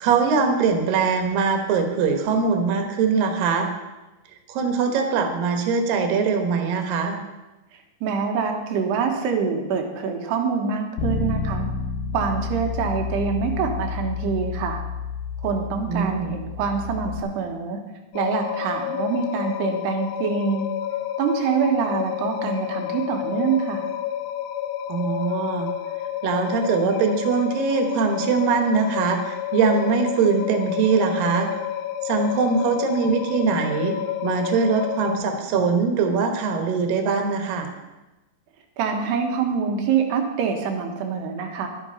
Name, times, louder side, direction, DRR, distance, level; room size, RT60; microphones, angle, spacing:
voice 1, 0.0-3.7 4.5-7.2 15.9-16.3 24.9-25.7 26.2-31.5 32.0-34.0 34.2-37.7, right 5 dB, 65° right, 5 dB, 2.8 m, -22 dB
voice 2, 8.0-11.7 12.1-14.8 15.4-17.8 18.1-20.7 21.2-23.9 38.8-41.7, right 6 dB, 85° right, 4 dB, 3.4 m, -25 dB
Bass guitar, 11.0-17.2, left 5 dB, 70° left, 2.1 m, -30 dB
sound 1, 18.1-35.1, left 11 dB, 85° left, 2.8 m, -30 dB
12.0 x 10.5 x 5.5 m, 1.1 s
omnidirectional pair, 4.7 m